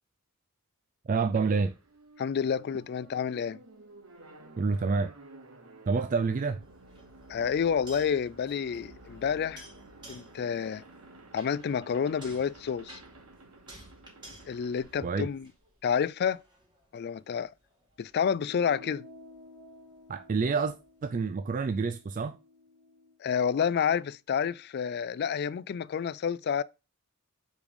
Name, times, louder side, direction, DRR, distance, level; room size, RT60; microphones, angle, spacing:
voice 1, 1.1-1.7 4.6-5.1 5.9-6.6 15.0-15.3 20.1-20.8 21.0-22.4, right 4 dB, 40° right, 0.4 m, -28 dB
sound 1, 1.4-16.1, right 2 dB, 80° right, 1.4 m, -53 dB
voice 2, 2.2-3.6 7.3-9.6 10.1-10.8 11.3-13.0 14.5-15.5 15.8-16.4 16.9-17.5 18.0-19.0 23.2-26.6, left 7 dB, 50° left, 0.3 m, -29 dB
sound 2, 6.6-15.8 16.3-21.2, right 1 dB, 20° right, 2.3 m, -54 dB
sound 3, 18.4-23.2, left 2 dB, 65° right, 1.5 m, -53 dB
5.2 x 5.0 x 5.2 m
head